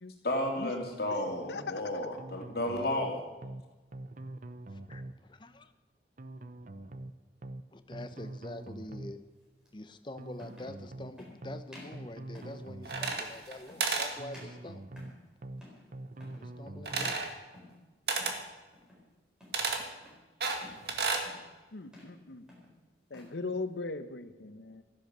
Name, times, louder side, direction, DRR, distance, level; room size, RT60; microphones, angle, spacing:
voice 1, 0.2-3.2, left 1 dB, 60° left, 1 dB, 2.8 m, -32 dB
voice 2, 1.5-2.0 21.7-22.4 23.1-24.8, left 3 dB, 80° left, 11 dB, 0.9 m, -39 dB
sound 1, 2.2-3.1 3.4-3.6 3.9-5.2 6.2-7.1 7.4-7.6 7.9-9.2 10.2-11.1 11.4-11.6 11.9-13.2 14.2-15.1 15.4-15.6 15.9-17.2, right 1 dB, 45° right, 0.7 m, -44 dB
voice 3, 5.3-5.7 7.7-9.2 9.7-14.8 16.4-17.2, left 1 dB, 25° left, 11 dB, 0.7 m, -45 dB
sound 2, 8.1-8.3 9.7-9.8 10.3-10.8 11.2-11.4 11.7-12.0 12.4-12.6 13.0-13.3 13.7-14.0 14.3-15.3 15.6-15.9 16.1-16.5 17.0-17.2 17.5-17.8 18.2-18.4 18.7-19.1 19.4-20.2 20.6-20.9 21.2-21.5 21.8-22.2 22.5-23.4, left 1 dB, 5° right, 4.3 m, -53 dB
sound 3, 12.8-13.5 13.8-14.1 16.9-17.3 18.1-18.4 19.5-19.8 20.4-21.3, right 4 dB, 65° right, 1.8 m, -31 dB
14.0 x 10.5 x 6.8 m, 1.2 s
head